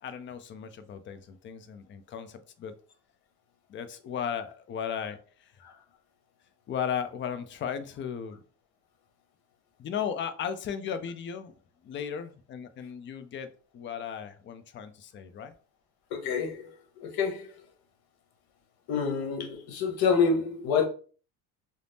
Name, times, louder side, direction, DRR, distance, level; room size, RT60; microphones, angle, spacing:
voice 1, 0.0-2.7 3.7-5.5 6.7-8.4 9.8-11.5 11.8-15.5, left 8 dB, 30° left, 0.3 m, -36 dB
voice 2, 16.1-17.6 18.9-20.9, left 5 dB, 55° left, 0.9 m, -28 dB
2.5 x 2.0 x 3.3 m
supercardioid pair, 100°, 44 cm